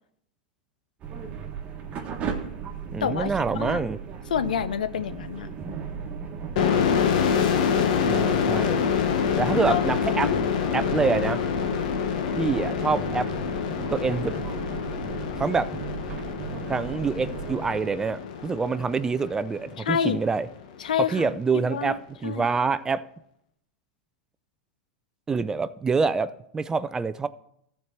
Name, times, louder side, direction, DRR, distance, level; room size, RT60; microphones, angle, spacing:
sound 1, 1.0-17.7, right 6 dB, 30° right, 1.4 m, -37 dB
voice 1, 2.9-4.0 8.0-8.9 9.4-10.3 10.7-11.4 12.4-13.3 13.7-14.3 15.4-15.8 16.7-20.5 21.0-23.0 25.3-27.3, right 4 dB, 15° right, 0.4 m, -26 dB
voice 2, 4.3-5.5 9.7-9.8 10.2-10.4 19.9-20.2 20.8-22.0 22.2-22.5, left 8 dB, 90° left, 0.7 m, -27 dB
sound 2, 6.6-20.0, left 7 dB, 65° left, 1.2 m, -26 dB
14.0 x 4.6 x 6.0 m
hypercardioid pair, 125°, 4 cm